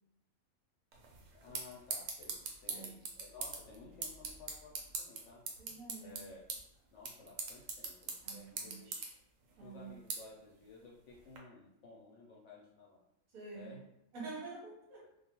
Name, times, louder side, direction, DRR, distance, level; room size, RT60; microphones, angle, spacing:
sound 1, 0.9-11.4, right 4 dB, 70° right, 0.9 m, -44 dB
voice 1, 1.3-5.4 6.0-6.5 6.9-8.9 9.6-13.0 13.5-13.8, left 3 dB, 65° left, -4 dB, 0.8 m, -55 dB
voice 2, 5.6-6.2 8.2-9.1 9.6-9.9 13.3-13.7 14.1-15.1, right 4 dB, 40° right, -4 dB, 0.8 m, -48 dB
2.4 x 2.2 x 2.9 m, 0.83 s
omnidirectional pair, 1.5 m